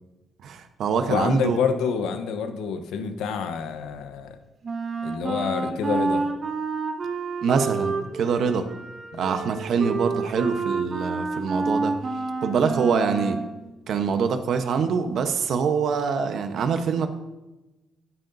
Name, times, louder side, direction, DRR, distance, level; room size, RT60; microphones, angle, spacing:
voice 1, 0.4-1.6 7.4-8.7 9.2-11.9 12.4-13.4 13.9-17.1, right 6 dB, 70° right, 7 dB, 1.0 m, -24 dB
voice 2, 1.1-4.4 5.0-6.3 9.1-9.4, left 6 dB, 90° left, 7 dB, 1.0 m, -27 dB
Wind instrument woodwind instrument, 4.6-13.5, right 4 dB, 45° right, 1.7 m, -29 dB
13.0 x 10.5 x 2.7 m, 1.0 s
cardioid pair, 90°, 0 cm